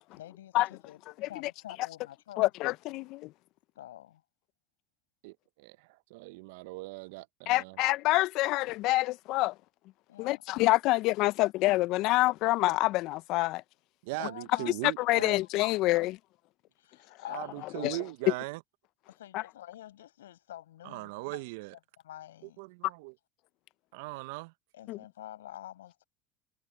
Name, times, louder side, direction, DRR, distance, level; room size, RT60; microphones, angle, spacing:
voice 1, 0.2-1.0 1.3-2.5 3.8-4.2 10.1-10.4 14.2-15.8 16.8-17.9 19.1-21.4 22.0-22.6 24.7-26.0, left 13 dB, 85° left, 6.1 m, -47 dB
voice 2, 2.4-3.3 7.5-9.5 10.2-13.6 15.0-16.2 17.8-18.0 19.3-19.4 24.9-25.0, left 19 dB, 60° left, 0.9 m, -27 dB
voice 3, 5.2-7.8 14.0-15.4 17.3-18.6 20.8-21.8 22.6-23.1 23.9-24.5, right 23 dB, 75° right, 0.9 m, -40 dB
hypercardioid pair, 75°, 0 cm